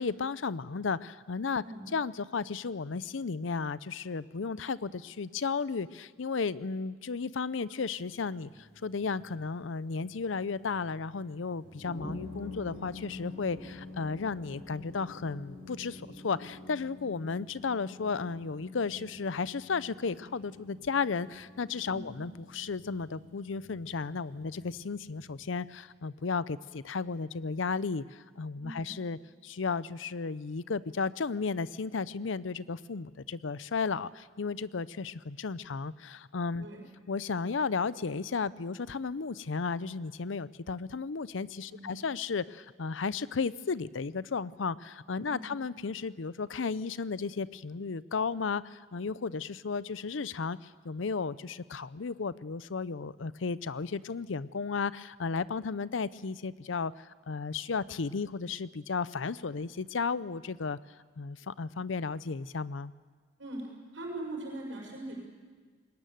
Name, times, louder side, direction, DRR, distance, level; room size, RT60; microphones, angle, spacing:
voice 1, 0.0-1.6 1.9-36.7 37.1-60.8 61.2-62.9, left 4 dB, 80° left, 17 dB, 0.6 m, -34 dB
sound 1, 8.1-25.5, left 2 dB, 50° left, 5.6 m, -48 dB
voice 2, 21.9-22.3 28.6-28.9 36.6-36.8 41.7-42.0 45.3-45.5 63.4-63.6 63.9-65.2, right 1 dB, 80° right, 0 dB, 6.1 m, -41 dB
21.0 x 19.5 x 9.2 m, 1.5 s
head